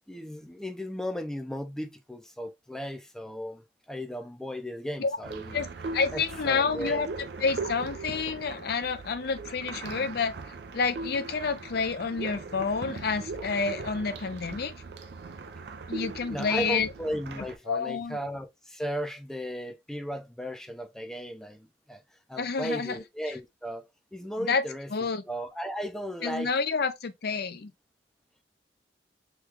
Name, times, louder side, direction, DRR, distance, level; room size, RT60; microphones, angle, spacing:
voice 1, 0.1-5.6 6.1-7.1 16.3-22.0 22.3-23.8 24.1-26.5, equal, 5° left, 0.5 m, -36 dB
sound 1, 5.2-17.6, right 3 dB, 65° right, 0.5 m, -39 dB
voice 2, 5.9-7.1 7.4-10.3 10.7-14.7 15.9-16.9 17.7-18.2 22.4-23.0 23.2-23.3 24.4-24.6 24.9-25.2 26.2-27.7, left 5 dB, 60° left, 0.5 m, -29 dB
3.1 x 2.3 x 3.4 m
head